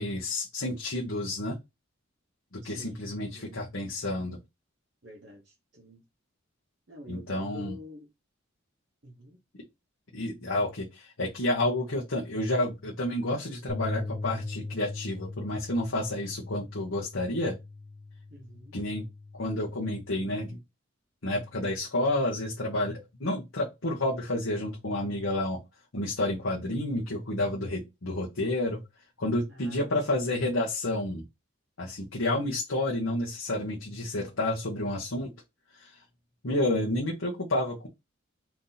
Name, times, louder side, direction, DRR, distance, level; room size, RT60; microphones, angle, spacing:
voice 1, 0.0-1.6 2.5-4.4 7.1-7.7 10.1-17.6 18.7-19.0 19.3-20.6 21.2-25.6 25.9-28.8 29.2-31.2 31.8-35.3 35.7-36.0 36.4-37.9, left 1 dB, 75° left, 1.1 m, -30 dB
voice 2, 2.6-3.0 3.3-3.7 5.0-6.0 6.9-8.1 9.0-9.4 18.3-18.8 29.5-29.9, left 1 dB, 60° right, 1.0 m, -47 dB
Bass guitar, 13.7-19.9, left 3 dB, 30° left, 0.8 m, -40 dB
4.6 x 2.8 x 3.9 m
head